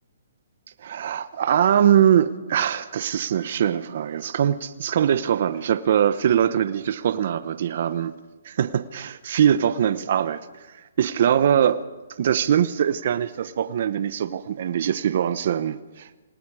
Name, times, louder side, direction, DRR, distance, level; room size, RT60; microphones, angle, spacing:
voice 1, 0.8-8.1 8.4-10.4 11.0-11.8 12.2-16.1, right 9 dB, 55° right, 0.9 m, -22 dB
28.5 x 18.5 x 4.9 m
hypercardioid pair, 155°, 0 cm